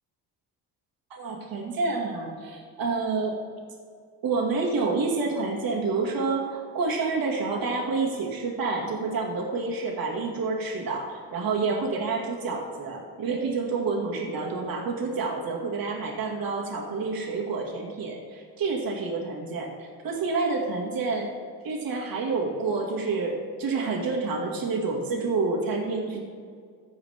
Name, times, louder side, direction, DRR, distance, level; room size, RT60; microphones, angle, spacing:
voice 1, 1.1-3.4 4.2-21.3 21.6-26.2, right 4 dB, 55° right, -1 dB, 1.9 m, -28 dB
14.0 x 4.8 x 3.4 m, 2.1 s
cardioid pair, 85°, 42 cm